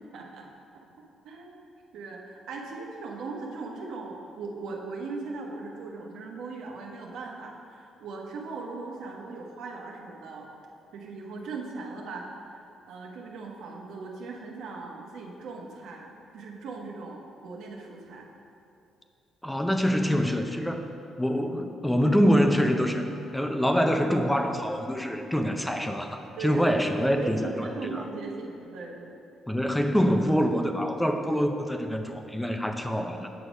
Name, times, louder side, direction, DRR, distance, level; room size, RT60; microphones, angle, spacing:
voice 1, 0.1-0.5 0.8-0.9 1.2-1.7 1.9-10.5 10.9-18.3 26.4-29.2, right 3 dB, 80° right, -1 dB, 1.2 m, -39 dB
voice 2, 19.4-20.8 21.2-23.0 23.3-28.0 29.5-33.3, equal, 5° left, 5 dB, 0.6 m, -25 dB
8.3 x 6.3 x 5.1 m, 2.7 s
cardioid pair, 90°, 0 cm